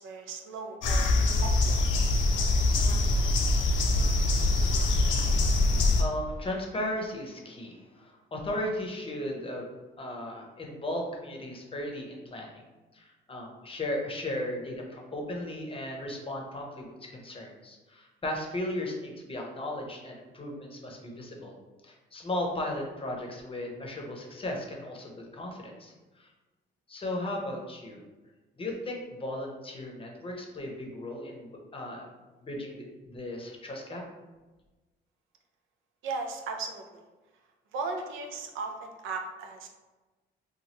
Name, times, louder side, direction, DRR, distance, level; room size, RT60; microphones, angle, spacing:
voice 1, 0.0-1.8 36.0-37.0 37.7-39.7, right 4 dB, 85° right, 4 dB, 0.5 m, -37 dB
sound 1, 0.8-6.0, left 2 dB, 75° left, 0.5 m, -24 dB
voice 2, 5.9-9.7 10.0-12.6 12.9-21.6 21.8-26.3 26.9-28.0 28.6-32.1 32.4-34.0, left 1 dB, 25° left, 0 dB, 0.7 m, -36 dB
3.0 x 2.3 x 2.8 m, 1.2 s
cardioid pair, 90°, 20 cm